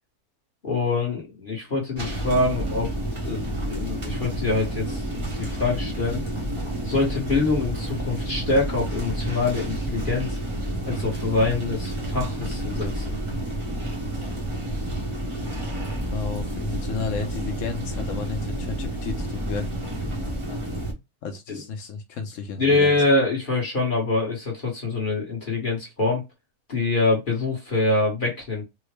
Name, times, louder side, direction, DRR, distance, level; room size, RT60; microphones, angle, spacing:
voice 1, 0.6-2.9 3.2-6.2 6.8-10.4 10.8-13.2 21.5-21.6 22.6-26.2 26.7-28.6, left 3 dB, 40° left, 1.1 m, -25 dB
sound 1, 2.0-20.9, right 1 dB, 25° right, 0.7 m, -30 dB
voice 2, 16.1-19.7 21.2-22.9, left 5 dB, 65° left, 1.0 m, -32 dB
3.6 x 2.0 x 3.2 m
omnidirectional pair, 1.5 m